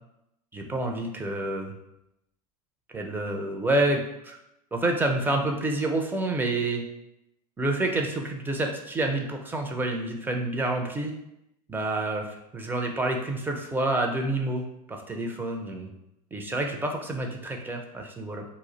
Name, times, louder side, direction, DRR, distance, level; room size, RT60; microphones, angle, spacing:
voice 1, 0.5-1.7 2.9-4.4 4.7-6.8 7.6-11.1 11.7-15.9 16.3-18.4, right 2 dB, 10° right, 2 dB, 0.4 m, -28 dB
2.4 x 2.0 x 3.8 m, 0.84 s
hypercardioid pair, 90°, 20 cm